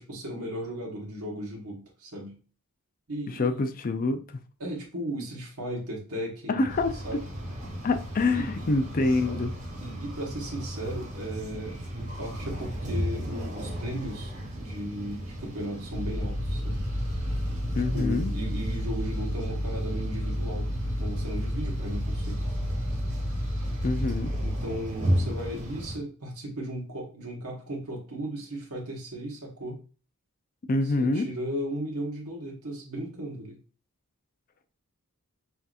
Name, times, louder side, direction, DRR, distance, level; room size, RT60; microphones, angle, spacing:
voice 1, 0.0-2.4 3.1-3.6 4.6-7.2 8.3-8.7 9.8-16.8 17.9-22.5 24.4-29.8 31.0-33.6, equal, 80° right, 1.3 m, -36 dB
voice 2, 3.4-4.4 6.5-6.9 7.8-9.5 17.8-18.3 23.8-24.3 30.7-31.2, left 3 dB, 40° left, 0.4 m, -26 dB
sound 1, 6.7-26.0, equal, 35° right, 1.2 m, -35 dB
sound 2, 15.9-24.6, equal, 70° left, 1.9 m, -31 dB
5.7 x 2.8 x 2.4 m
head